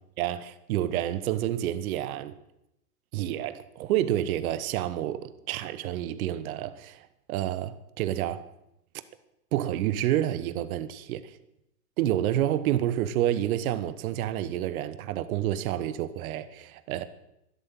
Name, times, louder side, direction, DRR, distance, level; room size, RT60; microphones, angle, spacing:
voice 1, 0.2-2.3 3.1-8.4 9.5-11.2 12.0-17.0, right 12 dB, 60° right, 1.3 m, -29 dB
12.5 x 11.0 x 7.8 m
hypercardioid pair, 105°, 49 cm